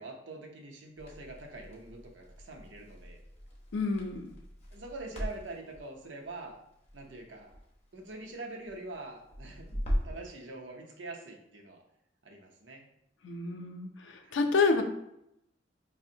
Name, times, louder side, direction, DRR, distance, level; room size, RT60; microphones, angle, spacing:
voice 1, 0.0-3.2 4.7-6.6 6.9-7.5 7.9-9.8 10.0-11.8 12.2-12.9 14.2-14.4, right 2 dB, 85° right, 1 dB, 0.6 m, -44 dB
Crackle, 1.0-10.3, equal, 35° left, 0.8 m, -40 dB
voice 2, 3.7-4.3 13.2-14.8, left 4 dB, 90° left, 5 dB, 0.5 m, -29 dB
4.9 x 2.0 x 2.7 m, 0.79 s
head